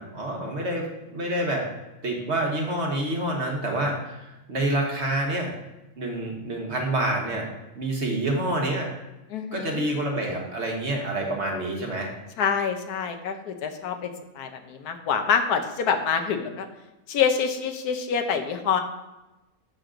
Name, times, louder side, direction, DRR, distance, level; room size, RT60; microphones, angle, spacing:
voice 1, 0.0-1.7 2.0-5.5 6.0-7.5 7.8-8.9 9.5-12.1, right 1 dB, 50° right, 0 dB, 1.5 m, -27 dB
voice 2, 9.3-9.8 12.4-16.7 17.1-18.8, left 6 dB, 90° left, 7 dB, 1.4 m, -26 dB
7.9 x 6.1 x 3.8 m, 0.99 s
omnidirectional pair, 1.6 m